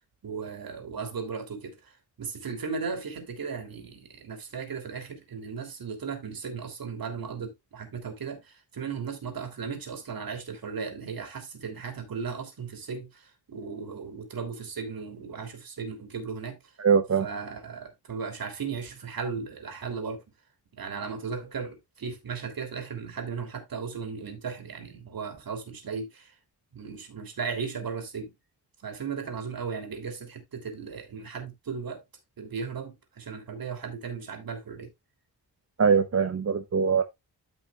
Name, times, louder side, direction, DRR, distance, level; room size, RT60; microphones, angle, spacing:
voice 1, 0.2-1.9 2.2-16.6 17.2-20.2 20.8-26.3 26.7-28.3 28.8-32.0 32.4-34.9, right 5 dB, 60° right, 3.0 m, -36 dB
voice 2, 16.8-17.3 35.8-37.0, right 6 dB, 40° right, 0.8 m, -22 dB
13.5 x 5.6 x 2.3 m
wide cardioid pair, 160°, 39 cm